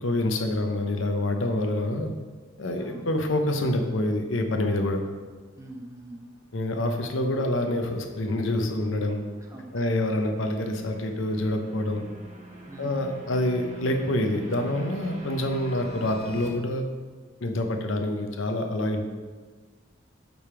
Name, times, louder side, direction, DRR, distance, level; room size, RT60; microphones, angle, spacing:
voice 1, 0.0-2.1 2.6-5.0 6.5-9.2 9.7-12.1 12.8-16.8 17.4-19.0, left 1 dB, 80° left, 4 dB, 0.8 m, -27 dB
voice 2, 2.7-3.1 5.6-6.3 9.4-9.9 12.7-13.1, right 1 dB, 15° right, 2 dB, 0.7 m, -43 dB
tension build, 5.4-16.5, right 1 dB, 35° right, 1.0 m, -45 dB
5.3 x 4.9 x 5.8 m, 1.4 s
head